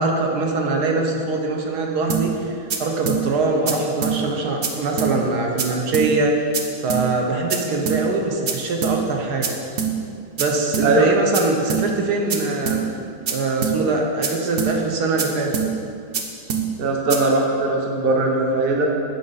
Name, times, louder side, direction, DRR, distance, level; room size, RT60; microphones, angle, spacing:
voice 1, 0.0-9.6 10.4-12.8 13.3-15.5, right 3 dB, 70° right, 1 dB, 1.3 m, -23 dB
sound 1, 2.1-2.2 2.7-2.8 3.1-3.2 3.7-3.8 4.0-4.2 4.6-4.7 5.0-5.1 5.6-5.7 5.9-6.1 6.5-6.6 6.9-7.0 7.5-7.6 7.9-8.0 8.5-8.6 8.8-9.0 9.4-9.5 9.8-9.9 10.4-10.5 10.7-10.9 11.3-11.4 11.7-11.8 12.3-12.4 12.7-12.8 13.3-13.4 13.6-13.8 14.2-14.3 14.6-14.7 15.2-15.3 15.5-15.7 16.1-16.2 16.5-16.6 17.1-17.2, right 7 dB, 85° right, 0.5 m, -23 dB
voice 2, 16.8-18.8, right 2 dB, 45° right, 1 dB, 0.8 m, -19 dB
8.6 x 5.2 x 4.0 m, 2.4 s
omnidirectional pair, 1.9 m